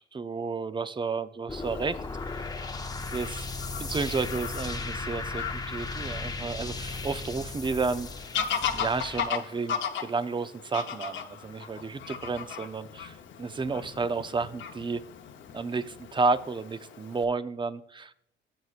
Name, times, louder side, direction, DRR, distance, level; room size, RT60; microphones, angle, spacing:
voice 1, 0.0-2.0 2.3-2.5 3.1-3.5 3.8-8.1 8.7-15.0 15.5-18.1, right 4 dB, 25° right, 12 dB, 0.6 m, -31 dB
Fowl / Bird vocalization bird call bird song, 1.5-17.2, left 7 dB, 70° left, 0.9 m, -38 dB
sound 1, 1.5-9.3, left 3 dB, 20° left, 0.7 m, -36 dB
14.0 x 8.0 x 2.5 m, 0.76 s
cardioid pair, 90°, 20 cm